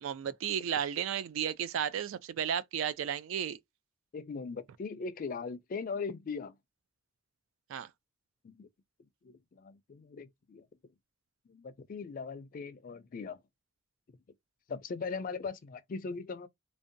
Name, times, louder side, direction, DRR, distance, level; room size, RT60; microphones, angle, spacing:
voice 1, 0.0-3.6 7.7-7.9, right 9 dB, 75° right, 0.3 m, -33 dB
voice 2, 4.1-6.6 8.4-8.7 9.2-10.7 11.5-13.4 14.7-16.5, left 4 dB, 45° left, 0.4 m, -39 dB
2.6 x 2.2 x 2.5 m
head